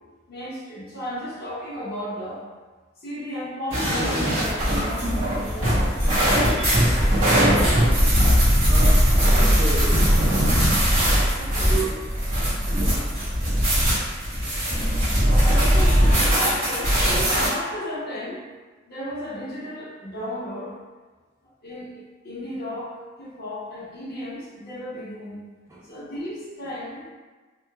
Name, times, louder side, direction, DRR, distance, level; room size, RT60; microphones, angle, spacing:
voice 1, 0.3-2.4 3.0-5.8 6.2-6.6 11.3-12.0 15.2-17.0 17.5-18.4 18.9-20.8 21.6-25.4 25.8-27.1, left 1 dB, 50° left, -9 dB, 0.7 m, -34 dB
sound 1, 3.7-17.5, equal, 90° right, 1.4 m, -20 dB
voice 2, 8.6-9.0 9.3-10.0 11.7-11.9 12.6-13.0 25.7-25.9, right 2 dB, 15° right, -5 dB, 0.4 m, -31 dB
2.9 x 2.0 x 2.3 m, 1.3 s
head